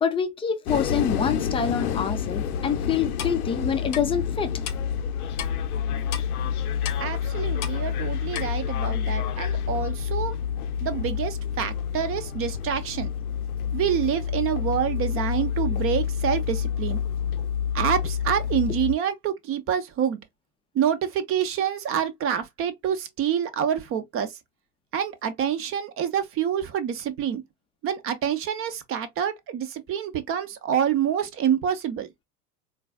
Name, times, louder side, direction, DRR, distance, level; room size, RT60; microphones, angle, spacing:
voice 1, 0.0-4.5, left 7 dB, 10° left, 0.5 m, -26 dB
sound 1, 0.7-19.0, left 8 dB, 70° left, 0.7 m, -28 dB
Clock, 3.2-3.4 3.9-4.0 4.7-4.8 5.4-5.5 6.1-6.3 6.8-7.0 7.6-7.8 8.3-8.5, left 9 dB, 35° left, 0.8 m, -33 dB
voice 2, 7.0-10.4 10.8-13.1 13.7-17.0 17.7-20.2 20.7-24.4 24.9-27.4 27.8-32.1, right 9 dB, 30° right, 0.6 m, -27 dB
3.9 x 2.3 x 2.2 m
figure-of-eight pair, 85°, 47 cm